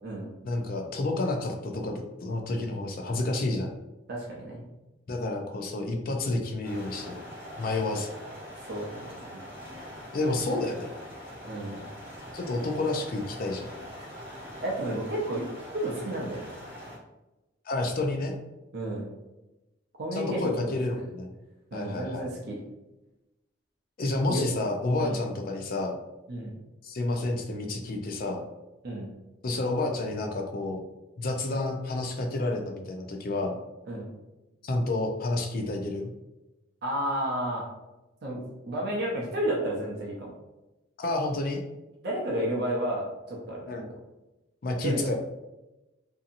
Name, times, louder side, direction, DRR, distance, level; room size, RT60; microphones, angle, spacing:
voice 1, 0.4-3.7 5.1-7.2 7.6-8.1 10.1-10.9 12.3-13.7 17.7-18.4 20.1-21.3 21.7-22.3 24.0-26.0 26.8-28.4 29.4-30.8 31.2-33.6 34.6-36.1 41.0-41.6 43.7-43.9 44.6-45.1, left 2 dB, 50° left, 3 dB, 0.4 m, -30 dB
voice 2, 4.1-4.7 8.7-9.4 11.4-11.8 14.6-15.4 15.7-16.5 18.7-19.1 20.0-21.0 21.7-22.6 24.3-24.4 25.0-25.2 26.3-26.5 28.8-29.1 33.9-34.1 36.8-37.7 38.2-38.4 38.7-40.4 42.0-43.6 44.8-45.1, right 1 dB, 55° right, -3 dB, 0.6 m, -32 dB
sound 1, 6.6-17.0, equal, 10° right, 0.9 m, -43 dB
2.7 x 2.7 x 2.5 m, 1.0 s
head